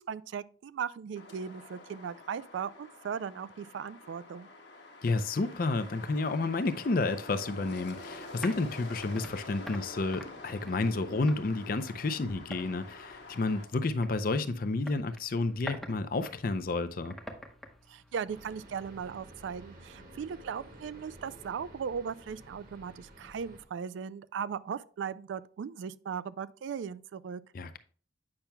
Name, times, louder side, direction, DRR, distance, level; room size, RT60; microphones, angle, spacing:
voice 1, 0.0-4.5 17.9-27.4, right 7 dB, 80° right, 0.3 m, -38 dB
sound 1, 1.2-13.7, left 2 dB, 65° left, 1.2 m, -47 dB
voice 2, 5.0-17.2 27.5-27.8, left 3 dB, 50° left, 0.5 m, -31 dB
sound 2, 7.7-19.1, equal, ahead, 0.7 m, -48 dB
sound 3, 18.3-23.6, right 1 dB, 50° right, 1.3 m, -52 dB
8.6 x 5.8 x 2.2 m
head